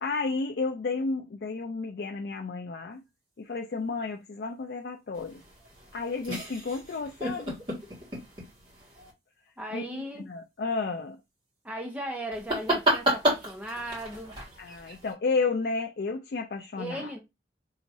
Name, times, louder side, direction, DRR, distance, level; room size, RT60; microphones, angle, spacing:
voice 1, 0.0-3.0 3.4-5.4 5.9-7.6 9.7-11.2 14.6-17.1, left 4 dB, 60° left, 0.4 m, -32 dB
sound 1, 5.1-9.1 12.3-15.1, right 1 dB, 30° right, 1.7 m, -32 dB
voice 2, 9.6-10.3 11.6-14.3 16.8-17.2, right 1 dB, 10° right, 0.9 m, -37 dB
4.8 x 3.0 x 2.6 m
head